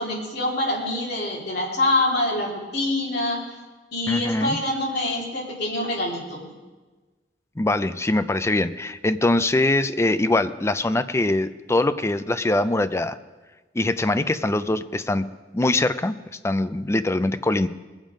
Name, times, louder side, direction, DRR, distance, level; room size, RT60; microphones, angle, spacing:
voice 1, 0.0-3.4 3.9-6.5, left 1 dB, 65° left, -5 dB, 3.4 m, -25 dB
voice 2, 4.1-4.6 7.6-13.2 13.7-15.3 15.5-16.1 16.4-17.7, left 2 dB, 15° left, 12 dB, 0.4 m, -22 dB
21.0 x 7.3 x 5.1 m, 1.3 s
head